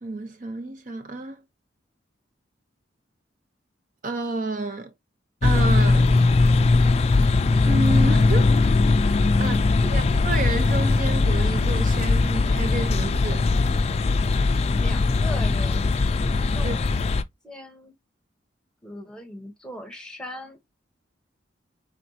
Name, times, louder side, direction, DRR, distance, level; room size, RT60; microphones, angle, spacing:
voice 1, 0.0-1.4 4.0-4.9 5.4-6.1 7.6-8.5 9.4-13.5 16.6-16.8, right 2 dB, 45° right, 0.6 m, -30 dB
sound 1, 5.4-17.2, left 3 dB, 35° left, 0.3 m, -20 dB
voice 2, 14.8-16.0 16.5-17.0 17.4-17.9 18.8-20.6, left 1 dB, 5° left, 1.0 m, -39 dB
5.1 x 3.5 x 2.7 m
head